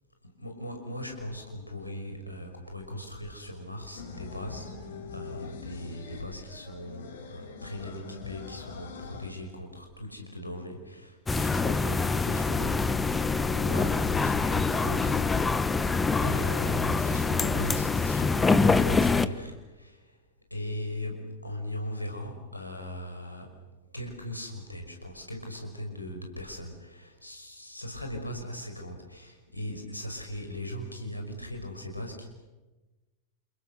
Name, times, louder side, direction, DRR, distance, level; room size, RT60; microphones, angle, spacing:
voice 1, 0.4-4.7 5.1-15.2 16.2-20.0 20.5-23.5 23.9-32.3, left 1 dB, 85° left, 3 dB, 5.7 m, -39 dB
sound 1, 4.0-9.3, left 5 dB, 60° left, 5.1 m, -43 dB
sound 2, 11.3-19.2, left 4 dB, 10° left, 1.2 m, -25 dB
29.0 x 29.0 x 6.6 m, 1.2 s
figure-of-eight pair, 90°, 0 cm